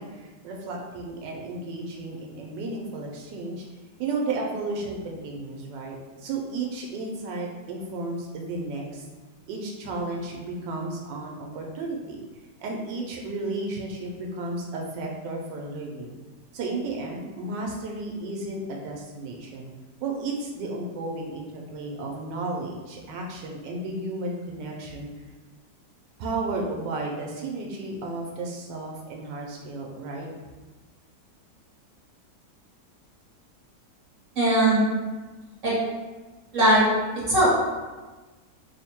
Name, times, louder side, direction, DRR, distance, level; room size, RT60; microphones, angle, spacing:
voice 1, 0.0-3.7 4.0-9.1 9.5-12.2 12.6-16.1 16.5-19.7 20.0-25.1 26.2-30.3, right 2 dB, 90° right, -1 dB, 1.3 m, -33 dB
voice 2, 34.4-34.9 35.6-35.7 36.5-36.8 37.3-37.5, right 1 dB, 50° right, -7 dB, 1.3 m, -19 dB
3.3 x 2.1 x 4.3 m, 1.2 s
omnidirectional pair, 1.9 m